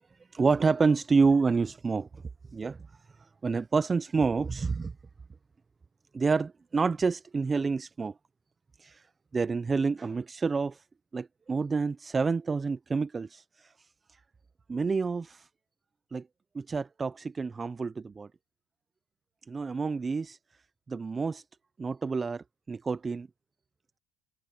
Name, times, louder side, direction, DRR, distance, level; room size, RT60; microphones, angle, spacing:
voice 1, 0.3-2.2 2.5-2.8 3.4-4.9 6.1-8.1 8.8-9.1 9.3-10.8 11.1-13.9 14.7-15.5 16.1-16.3 16.5-18.3 19.5-20.4 20.9-21.4 21.8-23.3, right 4 dB, 20° right, 0.4 m, -28 dB
supercardioid pair, 115°, 0 cm